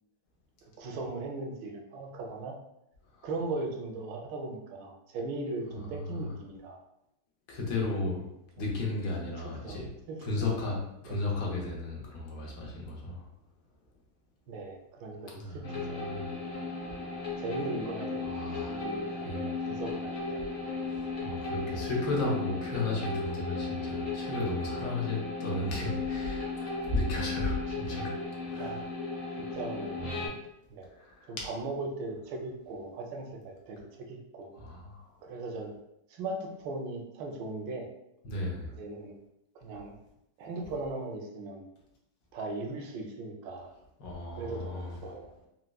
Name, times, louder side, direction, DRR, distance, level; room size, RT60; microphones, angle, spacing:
voice 1, 0.8-2.6 3.2-6.8 9.6-9.8 10.1-10.3 11.0-11.2 14.5-16.0 17.4-20.4 28.6-28.8 29.4-30.4 30.7-30.9 31.3-33.8 34.1-34.5 35.2-35.7 36.1-37.9 38.8-39.2 39.5-39.9 40.4-41.7 42.3-43.7 44.4-45.5, right 2 dB, 80° right, 1 dB, 1.3 m, -38 dB
voice 2, 7.5-8.3 8.6-9.9 10.2-13.3 15.3-16.3 16.9-17.0 18.2-18.9 19.2-19.5 21.2-28.1 28.5-28.8 30.9-31.5 34.5-35.1 38.2-38.7 44.0-45.0, left 2 dB, 75° left, -2 dB, 1.4 m, -34 dB
sound 1, 15.6-30.3, left 3 dB, 45° left, 0.8 m, -35 dB
4.6 x 2.0 x 2.2 m, 0.84 s
omnidirectional pair, 2.0 m